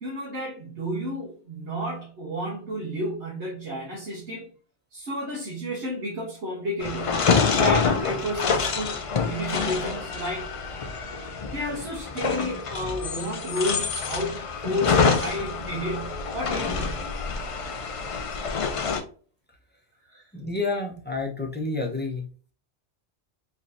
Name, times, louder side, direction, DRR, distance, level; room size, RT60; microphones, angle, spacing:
voice 1, 0.0-4.5 4.9-7.3 7.5-10.5 11.4-17.1 20.0-20.3, equal, 85° right, -4 dB, 1.4 m, -32 dB
sound 1, 6.8-19.0, left 5 dB, 55° left, 0.4 m, -26 dB
voice 2, 20.3-22.3, left 3 dB, 10° left, -2 dB, 0.7 m, -29 dB
4.0 x 3.1 x 2.6 m, 0.41 s
omnidirectional pair, 1.1 m